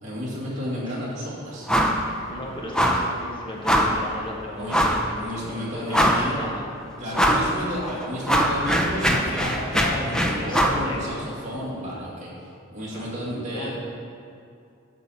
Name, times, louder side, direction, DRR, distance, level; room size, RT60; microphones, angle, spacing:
voice 1, 0.0-1.7 4.5-6.4 7.0-12.3 12.7-13.7, equal, 35° right, -6 dB, 2.3 m, -31 dB
sound 1, 1.7-2.0 2.3-2.4 2.7-3.1 3.7-4.0 4.7-5.1 5.5-5.6 5.9-6.4 7.1-7.5 7.9-10.8, equal, 5° left, 0.5 m, -21 dB
voice 2, 2.3-6.7 10.3-11.3 12.8-13.7, left 1 dB, 25° left, -2 dB, 1.3 m, -36 dB
10.5 x 4.4 x 7.1 m, 2.4 s
head